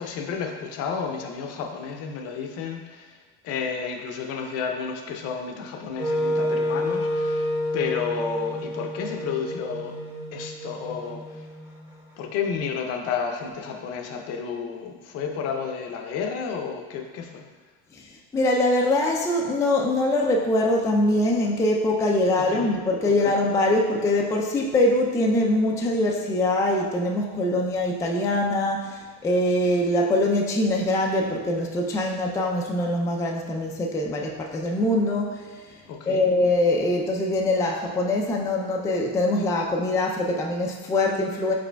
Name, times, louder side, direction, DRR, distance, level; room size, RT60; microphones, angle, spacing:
voice 1, 0.0-3.2 3.4-7.5 7.7-9.9 10.3-11.4 12.2-17.4 22.5-22.7 23.2-23.3 35.9-36.2, left 6 dB, 55° left, 3 dB, 0.6 m, -31 dB
Wind instrument woodwind instrument, 6.0-12.0, left 1 dB, 10° right, 1.0 m, -29 dB
voice 2, 18.3-35.6 36.1-41.5, left 1 dB, 10° left, -1 dB, 0.3 m, -23 dB
4.9 x 4.2 x 2.2 m, 1.4 s
supercardioid pair, 110°, 30 cm